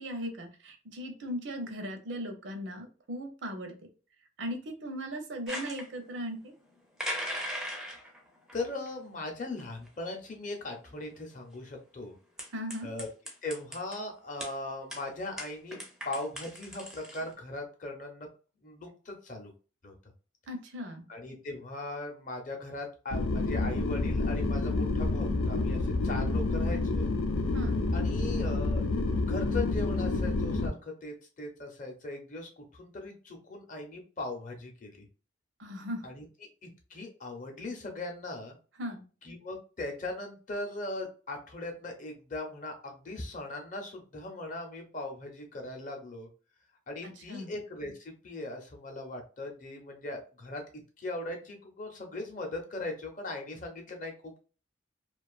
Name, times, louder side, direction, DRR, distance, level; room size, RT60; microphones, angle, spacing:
voice 1, 0.0-3.7 4.4-6.5 12.5-12.9 20.5-21.0 27.5-27.8 35.6-36.0 38.8-39.0 47.0-47.5, equal, 65° right, 5 dB, 0.6 m, -38 dB
sound 1, 5.5-5.9 7.0-8.2 8.5-8.9 9.6-9.7 9.9-10.0 11.0-11.1 12.4-14.0 14.4-14.5 14.9-15.0 15.4-17.3, equal, 5° right, 0.4 m, -38 dB
voice 2, 8.5-12.1 12.8-13.1 13.4-15.8 16.0-18.3 18.6-19.5 19.8-19.9 21.1-27.1 27.9-28.8 29.2-35.0 36.0-36.2 36.6-38.6 39.2-46.3 46.9-50.6 51.0-54.4, left 2 dB, 40° left, 3 dB, 0.6 m, -39 dB
sound 2, 23.1-30.7, left 3 dB, 85° left, 0.5 m, -28 dB
2.5 x 2.3 x 2.3 m, 0.35 s
head